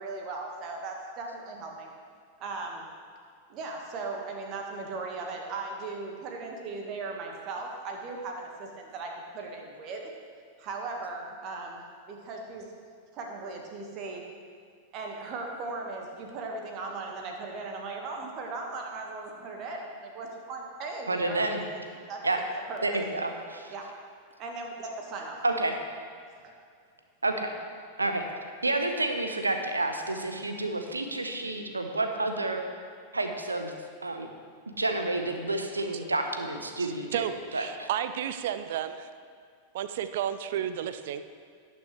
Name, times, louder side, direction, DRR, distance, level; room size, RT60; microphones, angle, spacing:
voice 1, 0.0-1.9 2.4-2.8 3.5-10.1 10.6-12.7 13.1-14.2 14.9-21.8 22.1-23.0 23.7-23.9 24.4-25.4, right 3 dB, 40° right, 1 dB, 1.6 m, -38 dB
voice 2, 21.1-21.6 22.2-22.4 22.8-23.7 25.4-25.7 27.2-27.5 28.0-28.2 28.6-32.6 33.1-33.7 34.0-34.3 34.8-37.2 37.5-37.9, right 2 dB, 80° right, 5 dB, 0.9 m, -29 dB
voice 3, 37.1-39.1 39.7-41.2, right 10 dB, 55° right, 11 dB, 0.5 m, -32 dB
18.0 x 6.5 x 3.3 m, 2.2 s
figure-of-eight pair, 90°, 0 cm